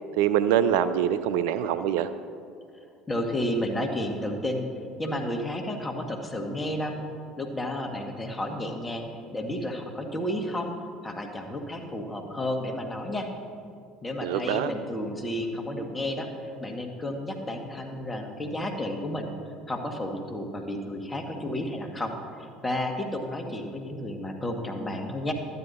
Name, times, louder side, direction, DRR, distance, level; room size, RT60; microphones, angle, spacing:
voice 1, 0.2-2.1 14.2-14.7, right 10 dB, 70° right, 12 dB, 0.4 m, -24 dB
voice 2, 3.1-4.7 5.0-6.9 7.4-10.7 11.0-13.3 14.0-19.3 19.7-22.1 22.4-25.3, left 1 dB, 20° left, 2 dB, 1.6 m, -32 dB
12.0 x 9.7 x 4.2 m, 2.3 s
hypercardioid pair, 70°, 0 cm